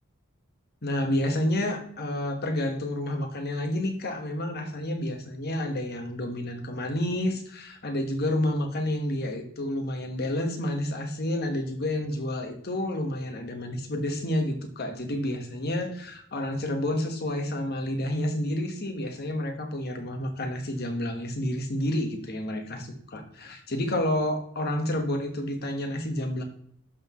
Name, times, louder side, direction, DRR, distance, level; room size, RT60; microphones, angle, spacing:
voice 1, 0.8-26.4, left 1 dB, 50° left, 5 dB, 1.4 m, -29 dB
11.5 x 6.1 x 3.1 m, 0.63 s
head